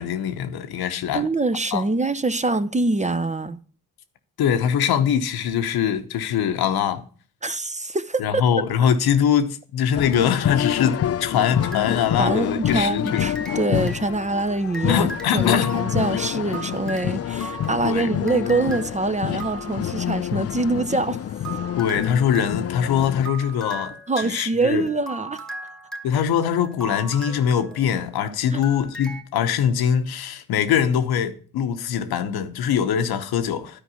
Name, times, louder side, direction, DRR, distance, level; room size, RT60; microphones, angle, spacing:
voice 1, 0.0-1.2 1.7-1.8 4.4-7.0 8.2-13.3 14.9-15.9 17.8-18.1 21.8-24.9 26.0-33.8, left 8 dB, 80° left, 0.9 m, -23 dB
voice 2, 1.1-3.6 7.4-8.2 12.2-21.3 24.1-25.4 28.5-28.6, right 2 dB, 20° right, 0.6 m, -24 dB
sound 1, 10.0-23.3, left 10 dB, 40° left, 0.4 m, -27 dB
sound 2, 11.5-12.6 13.1-20.0 21.0-28.2 28.6-29.2, right 1 dB, ahead, 1.4 m, -39 dB
10.0 x 4.6 x 6.9 m
supercardioid pair, 40°, 37 cm